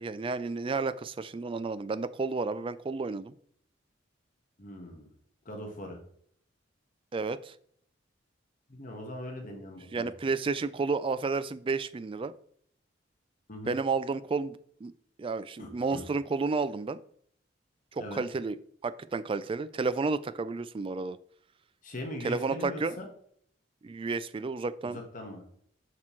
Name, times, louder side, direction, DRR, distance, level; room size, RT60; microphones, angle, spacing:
voice 1, 0.0-3.3 7.1-7.5 9.9-12.3 13.7-14.9 15.2-17.0 17.9-18.6 18.8-21.2 22.2-23.0 23.8-25.0, right 4 dB, 25° right, 14 dB, 0.3 m, -31 dB
voice 2, 4.6-5.1 5.4-6.0 8.7-10.1 13.5-13.8 15.6-16.1 18.0-18.2 21.8-23.1 24.8-25.4, left 1 dB, 45° left, 2 dB, 1.5 m, -40 dB
7.4 x 5.9 x 3.1 m, 0.63 s
head